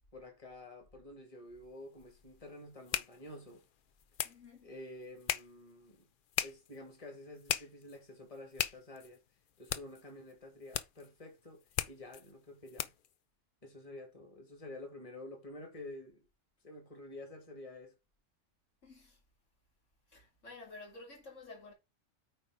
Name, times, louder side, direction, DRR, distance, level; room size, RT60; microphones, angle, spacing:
voice 1, 0.1-3.6 4.6-6.1 6.4-9.2 9.6-11.6 11.9-12.9 13.6-16.2 16.6-18.0, left 2 dB, 30° left, 2.2 m, -50 dB
sound 1, 1.6-13.2, left 9 dB, 55° left, 0.6 m, -41 dB
voice 2, 4.2-4.7 18.8-19.2 20.1-21.7, left 3 dB, 85° left, 2.8 m, -51 dB
8.9 x 3.6 x 5.0 m
omnidirectional pair, 1.3 m